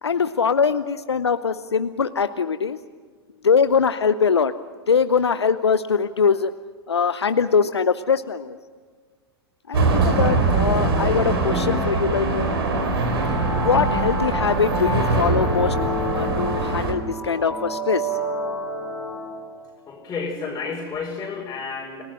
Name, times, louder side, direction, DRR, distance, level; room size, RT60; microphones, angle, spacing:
voice 1, 0.0-2.8 3.4-4.5 4.9-6.5 6.9-8.6 9.7-12.5 13.6-15.8 16.1-18.2, left 6 dB, 85° left, 12 dB, 0.7 m, -22 dB
sound 1, 9.7-16.9, right 3 dB, 70° right, 4.5 m, -22 dB
sound 2, 11.1-19.7, left 1 dB, 5° right, 6.1 m, -29 dB
voice 2, 19.9-22.0, left 4 dB, 20° left, -3 dB, 4.7 m, -31 dB
30.0 x 19.0 x 6.4 m, 1.5 s
figure-of-eight pair, 95°, 14 cm